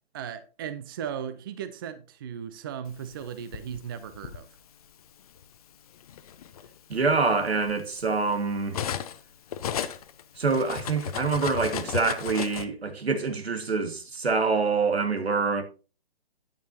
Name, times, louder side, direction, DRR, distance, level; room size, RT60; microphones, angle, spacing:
voice 1, 0.1-4.5, right 8 dB, 25° right, 0.5 m, -37 dB
Cutlery silverware, 3.1-4.4 5.4-5.6 6.0-9.2 9.5-12.6, left 9 dB, 40° left, 0.7 m, -35 dB
voice 2, 6.9-8.8 10.4-15.6, right 4 dB, 90° right, 1.8 m, -26 dB
9.0 x 9.0 x 2.8 m
hypercardioid pair, 145°, 30 cm